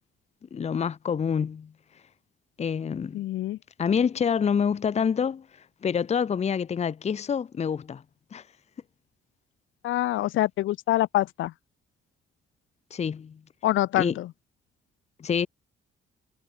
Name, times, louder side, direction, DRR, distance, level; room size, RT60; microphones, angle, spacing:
voice 1, 0.5-1.7 2.6-3.2 3.8-5.5 5.8-8.0 8.3-8.4 12.9-13.4 14.0-14.2 15.2-15.5, left 7 dB, 35° left, 0.7 m, -27 dB
voice 2, 3.1-3.6 9.8-11.5 13.6-14.3, left 15 dB, 80° left, 1.0 m, -25 dB
cardioid pair, 90°, 20 cm